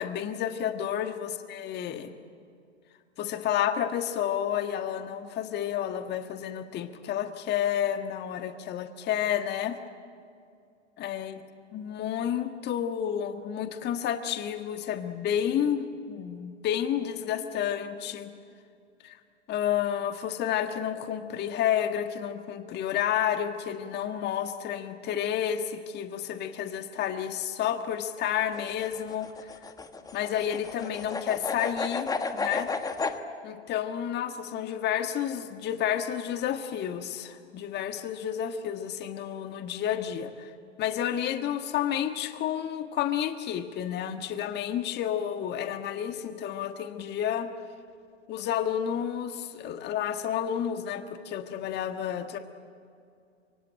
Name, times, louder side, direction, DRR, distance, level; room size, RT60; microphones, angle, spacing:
voice 1, 0.0-2.1 3.2-9.8 11.0-11.4 11.7-18.3 19.0-19.2 19.5-29.3 30.1-32.7 33.4-40.5 40.8-47.5 48.3-52.4, left 10 dB, 30° left, 7 dB, 1.5 m, -30 dB
sound 1, 28.4-33.2, left 4 dB, 10° left, 1.4 m, -32 dB
24.5 x 24.5 x 9.0 m, 2.4 s
hypercardioid pair, 105°, 35 cm